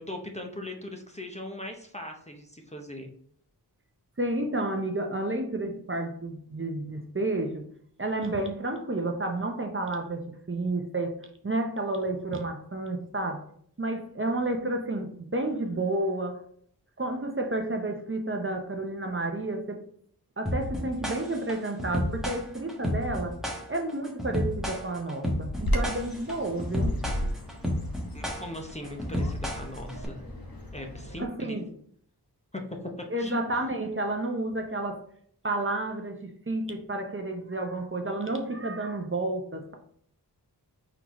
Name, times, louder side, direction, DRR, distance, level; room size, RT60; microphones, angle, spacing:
voice 1, 0.0-3.1 28.1-30.2 30.7-31.6 32.5-32.6 33.2-33.4, left 1 dB, 15° left, 2 dB, 0.7 m, -39 dB
voice 2, 4.2-7.7 8.0-11.2 11.4-13.4 13.8-16.4 17.0-19.8 20.4-23.4 23.7-27.0 31.2-31.7 33.1-35.0 35.4-39.7, right 2 dB, 30° right, 3 dB, 0.7 m, -31 dB
sound 1, 20.5-30.1, equal, ahead, 1.2 m, -31 dB
Bird vocalization bird call bird song, 25.6-31.2, equal, 60° left, 1.1 m, -34 dB
4.6 x 3.8 x 3.0 m, 0.64 s
wide cardioid pair, 60°, 40 cm